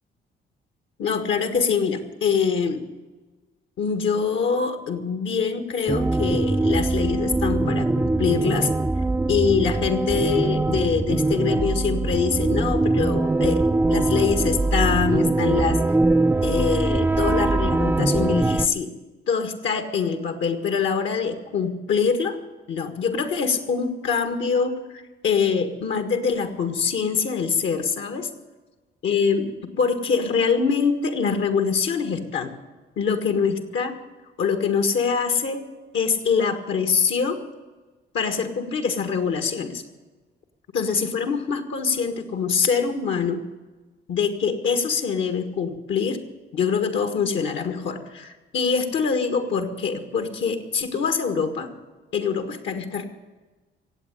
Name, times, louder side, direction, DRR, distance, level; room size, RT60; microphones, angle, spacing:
voice 1, 1.0-2.8 3.8-8.7 9.3-15.8 16.4-18.9 19.3-22.4 22.7-28.3 29.0-29.5 29.8-32.5 33.0-33.9 34.4-35.6 35.9-37.4 38.1-39.8 40.7-43.4 44.1-46.2 46.5-51.7 52.1-53.0, left 6 dB, 70° left, 7 dB, 1.7 m, -24 dB
sound 1, 5.9-18.7, right 2 dB, 10° right, 0.5 m, -22 dB
16.5 x 8.2 x 10.0 m, 1.3 s
cardioid pair, 90°, 20 cm